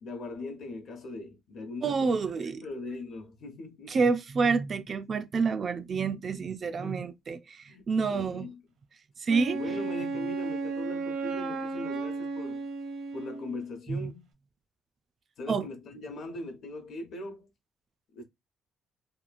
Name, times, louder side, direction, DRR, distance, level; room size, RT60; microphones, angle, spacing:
voice 1, 0.0-2.2 2.6-4.0 6.8-7.0 7.7-8.6 9.5-12.7 13.1-14.3 15.4-17.5 18.1-18.2, left 2 dB, 50° left, 0.8 m, -40 dB
voice 2, 1.8-2.6 3.9-8.5 9.2-9.6 13.9-14.1 15.5-15.6, right 4 dB, 30° right, 0.3 m, -28 dB
Wind instrument woodwind instrument, 9.3-13.6, right 3 dB, 70° right, 0.7 m, -34 dB
2.9 x 2.2 x 2.4 m
cardioid pair, 170°, 0 cm